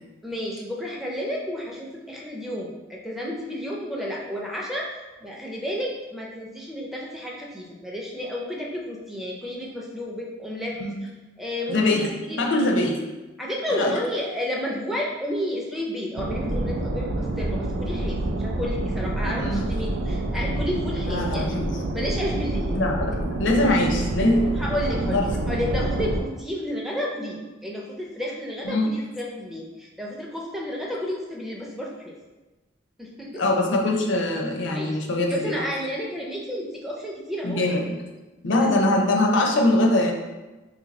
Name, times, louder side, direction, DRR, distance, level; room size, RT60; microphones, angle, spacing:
voice 1, 0.2-4.9 5.2-10.8 11.4-12.5 13.4-21.6 21.9-22.7 24.5-25.2 25.5-32.1 33.0-33.4 34.7-35.0 35.3-37.6 38.6-38.7, equal, ahead, -3 dB, 0.4 m, -31 dB
voice 2, 11.7-13.1 13.7-13.9 19.4-19.6 21.1-21.7 22.7-25.3 28.6-28.9 33.3-35.6 37.4-38.0 38.4-40.1, left 1 dB, 70° left, 1 dB, 0.5 m, -23 dB
sound 1, 16.2-26.2, right 2 dB, 80° right, 0.4 m, -27 dB
2.7 x 2.6 x 4.0 m, 1.1 s
head